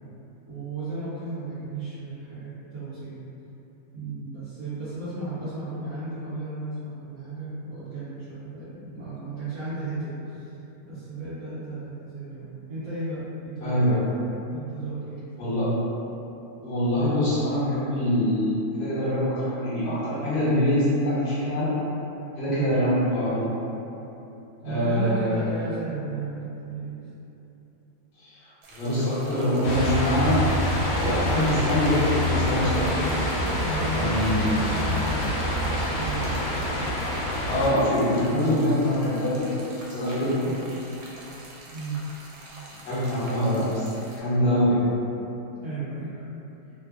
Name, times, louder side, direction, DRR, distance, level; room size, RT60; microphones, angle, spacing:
voice 1, 0.5-3.1 3.9-10.5 10.8-13.9 14.5-15.5 22.4-22.7 24.6-27.0 33.5-33.8 34.4-36.3 41.7-42.0 45.6-46.2, right 2 dB, 60° right, -15 dB, 1.0 m, -35 dB
voice 2, 13.6-14.0 15.4-15.6 16.6-21.7 22.4-23.4 24.6-25.4 28.2-30.4 31.0-33.0 33.9-34.7 37.5-39.5 39.9-40.5 42.8-43.9 44.2-44.8, left 1 dB, 60° left, -12 dB, 1.4 m, -24 dB
sound 1, 28.6-44.2, right 1 dB, 85° right, 1.4 m, -45 dB
sound 2, 29.6-37.7, equal, 80° left, 1.3 m, -26 dB
3.3 x 2.1 x 2.3 m, 3.0 s
omnidirectional pair, 2.1 m